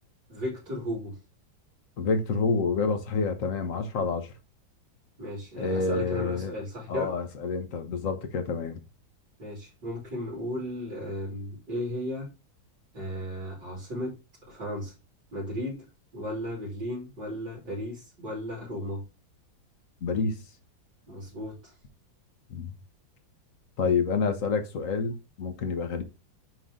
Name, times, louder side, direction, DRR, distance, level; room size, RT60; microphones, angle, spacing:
voice 1, 0.3-1.2 5.2-7.1 9.4-12.3 12.9-14.2 14.5-14.9 15.3-15.8 16.1-19.0 21.1-21.7, equal, 60° right, 3.8 m, -35 dB
voice 2, 2.0-4.3 5.6-6.5 6.9-8.8 20.0-20.4 22.5-22.8 23.8-26.0, left 4 dB, 50° left, 1.2 m, -28 dB
9.4 x 3.2 x 3.7 m
omnidirectional pair, 2.2 m